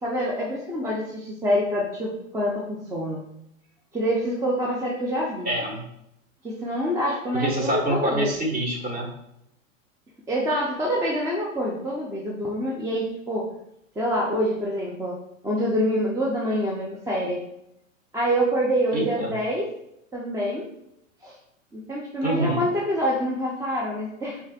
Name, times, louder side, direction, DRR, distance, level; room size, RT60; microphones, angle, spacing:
voice 1, 0.0-3.2 3.9-5.5 6.4-8.3 10.3-13.5 14.0-15.2 15.4-17.4 18.1-19.7 20.1-20.6 21.2-21.3 21.7-24.4, equal, 10° right, -4 dB, 0.5 m, -26 dB
voice 2, 5.4-5.8 7.3-9.1 18.9-19.3 22.2-22.6, right 1 dB, 25° right, -1 dB, 1.4 m, -26 dB
5.3 x 2.8 x 2.4 m, 0.79 s
hypercardioid pair, 115°, 40 cm